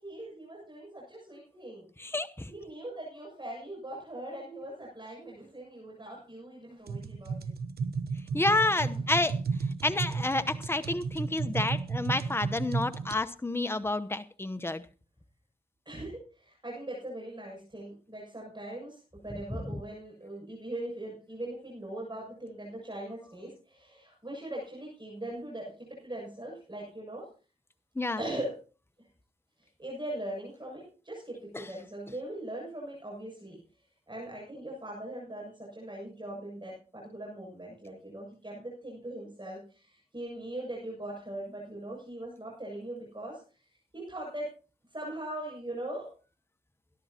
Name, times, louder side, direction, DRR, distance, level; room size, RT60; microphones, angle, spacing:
voice 1, 0.0-1.8 2.5-7.5 15.9-27.3 28.2-28.5 29.8-33.6 34.1-43.4 43.9-44.5 44.9-46.1, right 1 dB, 30° right, -3 dB, 7.3 m, -40 dB
voice 2, 2.0-2.5 8.3-9.4 9.8-14.8 28.0-28.2 31.5-31.7, left 2 dB, 15° left, 10 dB, 0.9 m, -29 dB
sound 1, 6.9-13.2, right 4 dB, 85° right, 1.0 m, -33 dB
21.5 x 11.5 x 2.9 m, 0.36 s
cardioid pair, 45°, 16 cm